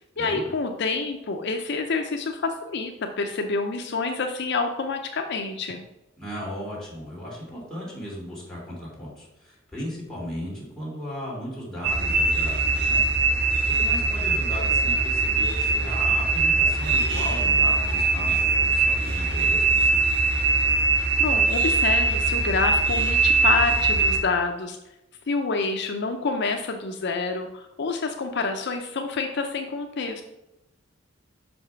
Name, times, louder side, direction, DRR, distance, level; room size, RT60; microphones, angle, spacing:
voice 1, 0.2-5.8 21.2-24.8 25.3-30.2, left 4 dB, 55° left, 4 dB, 0.5 m, -27 dB
voice 2, 6.2-13.0 13.3-20.0, equal, 5° left, -6 dB, 3.0 m, -36 dB
sound 1, 11.8-24.2, right 4 dB, 55° right, 1.5 m, -22 dB
5.8 x 5.2 x 5.7 m, 0.95 s
head